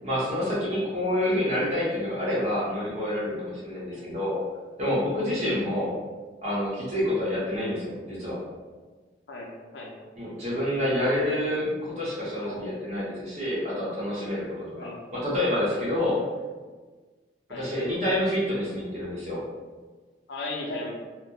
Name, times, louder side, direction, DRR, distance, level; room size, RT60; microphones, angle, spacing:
voice 1, 0.0-4.4 4.8-5.9 6.4-8.4 10.2-16.2 17.5-19.4, left 1 dB, 40° right, -7 dB, 0.8 m, -28 dB
voice 2, 9.3-9.9 12.4-12.7 14.7-15.0 17.5-17.7 20.3-20.9, left 2 dB, 80° left, -1 dB, 0.4 m, -37 dB
2.3 x 2.0 x 2.8 m, 1.4 s
head